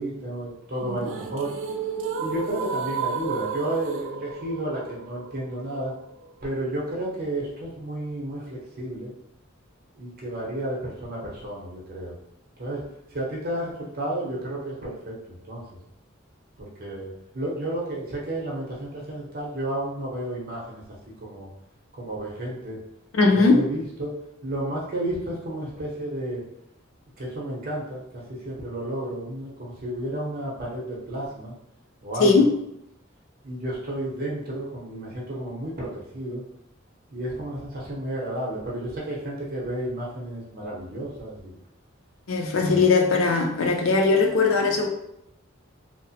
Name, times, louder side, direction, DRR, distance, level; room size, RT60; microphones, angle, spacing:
voice 1, 0.0-1.5 2.2-5.9 6.4-9.1 9.9-12.1 12.6-15.6 16.6-20.8 21.2-21.5 22.0-22.8 23.3-24.1 24.4-26.4 27.2-31.5 32.0-32.5 33.4-36.4 37.1-41.6 42.5-42.8, right 1 dB, 50° right, -4 dB, 0.8 m, -32 dB
sound 1, 0.8-6.8, right 5 dB, 75° right, 0.3 m, -33 dB
voice 2, 23.1-23.6 32.2-32.5 42.3-44.9, left 4 dB, 80° left, 2 dB, 0.5 m, -19 dB
2.8 x 2.0 x 2.7 m, 0.78 s
head